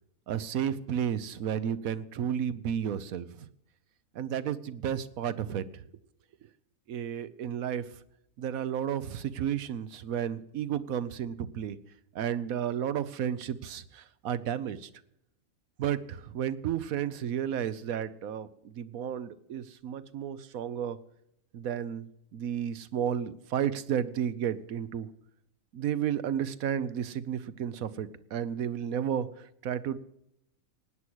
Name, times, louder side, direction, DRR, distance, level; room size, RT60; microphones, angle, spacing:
voice 1, 0.3-3.5 4.1-5.8 6.9-7.9 8.4-11.8 12.1-14.9 15.8-21.0 21.5-25.1 25.7-30.0, right 9 dB, 90° right, 14 dB, 1.3 m, -32 dB
17.0 x 9.9 x 6.2 m, 0.78 s
omnidirectional pair, 1.4 m